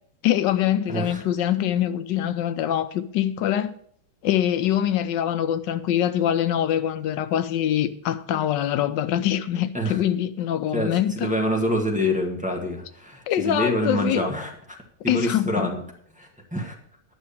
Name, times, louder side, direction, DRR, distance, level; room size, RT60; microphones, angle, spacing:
voice 1, 0.2-3.7 4.2-11.3 13.3-14.2 15.1-15.7, left 11 dB, 90° left, 1.4 m, -24 dB
voice 2, 0.9-1.2 9.7-10.0 10.7-14.8 15.0-15.8 16.2-16.7, equal, 5° right, 1.6 m, -26 dB
10.5 x 6.3 x 7.0 m
omnidirectional pair, 1.9 m